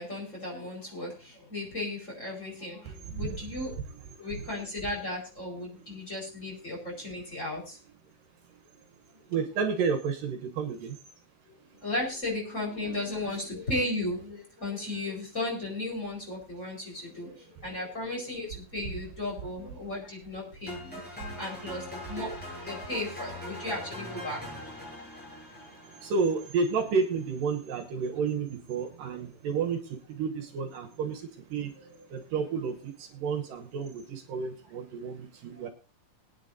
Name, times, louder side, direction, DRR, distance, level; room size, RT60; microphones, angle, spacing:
voice 1, 0.0-3.8 4.2-7.8 11.8-21.0 21.4-22.3 22.6-24.4 32.0-32.1, left 2 dB, 20° left, -2 dB, 5.0 m, -35 dB
voice 2, 2.9-3.3 9.3-11.0 25.9-31.7 32.1-35.7, right 5 dB, 70° right, 5 dB, 2.7 m, -31 dB
sound 1, 20.7-26.8, equal, ahead, 6.8 m, -41 dB
22.5 x 9.5 x 2.7 m, 0.32 s
omnidirectional pair, 4.1 m